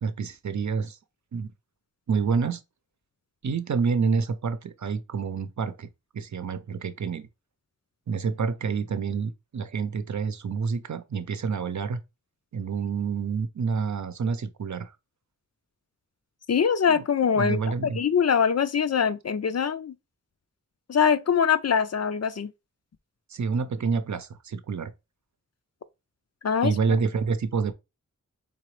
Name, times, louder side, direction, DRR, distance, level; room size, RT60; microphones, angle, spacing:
voice 1, 0.0-1.0 1.3-1.5 2.1-2.6 3.4-5.9 6.1-7.3 8.1-12.0 12.5-14.9 16.9-17.0 17.3-18.0 23.3-24.9 26.6-27.7, right 5 dB, 65° right, 0.7 m, -28 dB
voice 2, 16.5-19.9 20.9-22.5 26.4-26.7, left 7 dB, 55° left, 0.5 m, -23 dB
3.9 x 3.8 x 3.2 m
wide cardioid pair, 90°, 30 cm